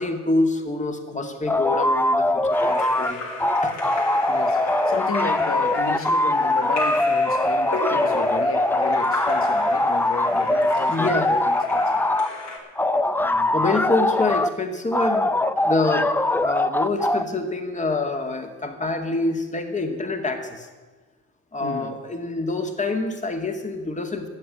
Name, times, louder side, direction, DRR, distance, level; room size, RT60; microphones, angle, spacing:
voice 1, 0.0-3.2 3.6-3.7 10.9-11.4 13.5-15.4 15.6-16.1 16.4-20.7 21.5-24.2, left 2 dB, 25° left, 2.2 m, -26 dB
sound 1, 1.5-3.1 3.4-12.3 12.8-14.5 14.9-17.2, left 1 dB, 5° left, 0.5 m, -22 dB
Splash splatter / Drip / Trickle dribble, 2.5-12.6, left 2 dB, 70° left, 4.3 m, -34 dB
voice 2, 4.3-12.0 13.2-14.0 21.6-22.0, left 5 dB, 45° left, 1.6 m, -34 dB
12.0 x 8.0 x 10.0 m
cardioid pair, 90°, 30 cm